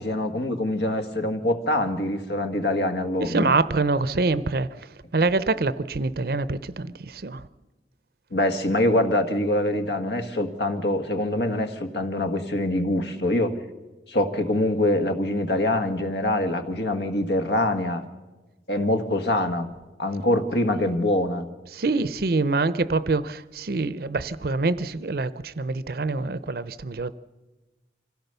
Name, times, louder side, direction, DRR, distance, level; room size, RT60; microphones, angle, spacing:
voice 1, 0.0-3.5 8.3-13.5 14.1-18.0 18.7-19.7 20.0-21.5, left 1 dB, 70° left, 1.7 m, -24 dB
voice 2, 3.2-7.5 20.8-21.0 21.7-27.1, right 3 dB, 55° right, 0.6 m, -25 dB
25.5 x 16.0 x 6.8 m
head